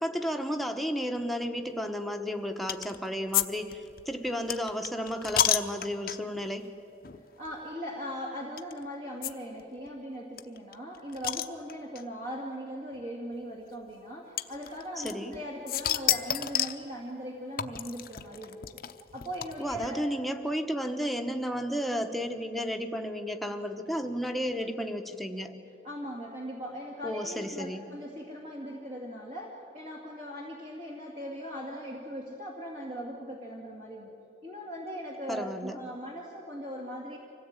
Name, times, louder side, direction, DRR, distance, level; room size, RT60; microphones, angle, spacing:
voice 1, 0.0-6.7 15.0-15.3 19.6-25.5 27.0-27.8 35.3-35.8, equal, ahead, 4 dB, 1.1 m, -33 dB
sound 1, 2.7-3.0 3.3-3.5 3.7-6.4 7.0-7.2 7.4-7.5 8.6-8.7 9.2-9.3 9.6-9.7 9.9-10.0 10.4-12.0 12.9-13.0 14.4-15.4 15.7-16.8 17.6-19.9, left 11 dB, 50° left, 0.7 m, -30 dB
voice 2, 7.4-18.8 19.1-20.1 25.8-34.1 34.4-37.2, equal, 45° right, -2 dB, 2.3 m, -39 dB
25.0 x 16.5 x 8.9 m, 2.9 s
head